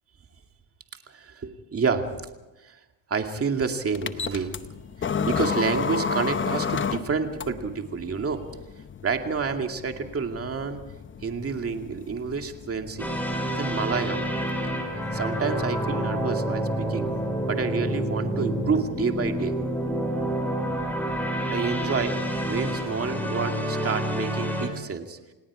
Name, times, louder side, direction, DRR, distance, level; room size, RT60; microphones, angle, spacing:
voice 1, 1.1-2.1 2.6-2.7 3.1-4.5 5.2-8.4 9.0-10.8 11.2-13.1 13.5-14.2 15.1-17.1 17.5-19.5 21.4-22.2 22.5-25.2, right 5 dB, 30° right, 5 dB, 2.3 m, -29 dB
sound 1, 3.9-23.1, left 6 dB, 25° left, 0.9 m, -35 dB
sound 2, 13.0-24.7, right 1 dB, 5° left, 4.8 m, -28 dB
28.5 x 18.5 x 4.9 m, 1.1 s
cardioid pair, 105°, 48 cm